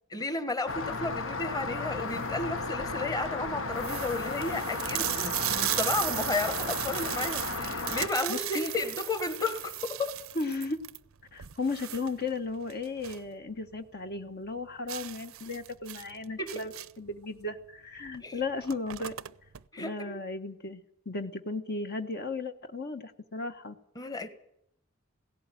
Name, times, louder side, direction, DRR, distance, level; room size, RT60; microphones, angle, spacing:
voice 1, 0.1-10.2 16.4-16.6 18.2-18.4 19.7-20.2 23.9-24.3, left 3 dB, 20° left, 1.5 m, -33 dB
Rain, 0.7-8.1, left 3 dB, 70° left, 1.4 m, -34 dB
sound 1, 2.1-2.4 3.0-3.1 3.3-3.4 3.7-13.3 13.6-13.7 14.1-14.2 14.9-17.1 18.1-18.2 18.5-19.6, right 15 dB, 90° right, 0.7 m, -36 dB
voice 2, 8.3-8.7 10.3-10.8 11.3-19.1 19.8-23.7, left 3 dB, 50° left, 1.3 m, -35 dB
17.5 x 16.5 x 9.1 m
head